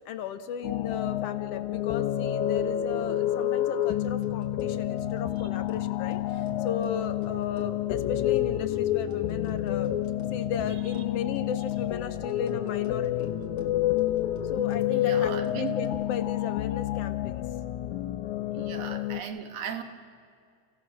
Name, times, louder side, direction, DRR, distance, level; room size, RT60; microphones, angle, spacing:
voice 1, 0.1-9.9 10.3-13.3 14.4-17.4 18.6-18.7, left 7 dB, 65° left, 10 dB, 1.8 m, -35 dB
sound 1, 0.6-19.2, left 12 dB, 85° left, 2.2 m, -29 dB
sound 2, 3.9-15.9, left 1 dB, 45° left, 2.2 m, -47 dB
sound 3, 5.4-16.9 17.1-17.2 17.4-17.5 17.7-17.8 18.0-18.1 18.3-18.4 18.6-18.7, right 2 dB, 90° right, 7.9 m, -56 dB
voice 2, 14.9-15.7 18.5-19.8, right 7 dB, 65° right, 6 dB, 2.5 m, -37 dB
30.0 x 16.5 x 6.4 m, 2.2 s
omnidirectional pair, 3.3 m